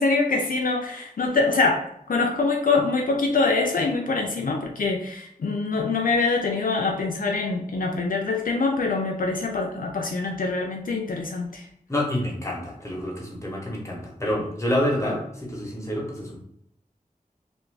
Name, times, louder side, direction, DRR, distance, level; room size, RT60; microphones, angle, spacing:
voice 1, 0.0-11.6, left 3 dB, 70° left, 1 dB, 0.4 m, -24 dB
voice 2, 11.9-16.4, left 1 dB, 20° left, -3 dB, 1.0 m, -28 dB
2.6 x 2.5 x 3.2 m, 0.73 s
wide cardioid pair, 60°, 15 cm